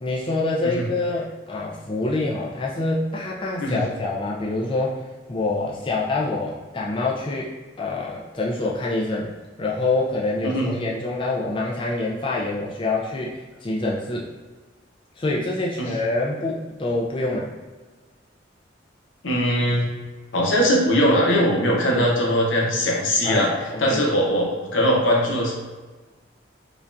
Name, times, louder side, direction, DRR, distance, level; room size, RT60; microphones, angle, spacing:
voice 1, 0.0-5.0 5.3-7.5 7.8-9.3 9.6-14.3 15.2-17.5 21.9-22.1 23.2-23.4 23.7-24.0, left 2 dB, 25° left, -4 dB, 0.4 m, -26 dB
voice 2, 10.4-10.7 15.8-15.9 19.2-19.9 20.3-23.5 23.8-25.5, equal, 85° left, -2 dB, 0.9 m, -20 dB
5.0 x 2.3 x 2.6 m, 1.3 s
head